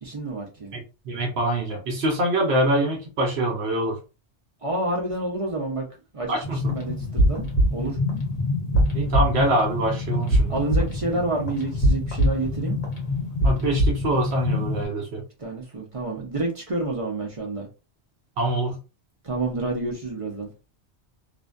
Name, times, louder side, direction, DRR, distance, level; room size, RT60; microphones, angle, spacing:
voice 1, 0.0-0.7 4.6-5.9 6.1-7.4 7.7-8.0 10.5-12.8 15.4-17.7 19.2-20.5, right 2 dB, 40° right, 0.5 m, -29 dB
voice 2, 0.7-4.0 6.3-6.6 8.9-10.6 13.4-15.2 18.4-18.8, right 1 dB, 70° right, 0.9 m, -24 dB
sound 1, 6.4-14.9, equal, 40° left, 0.8 m, -24 dB
2.4 x 2.2 x 2.4 m
omnidirectional pair, 1.2 m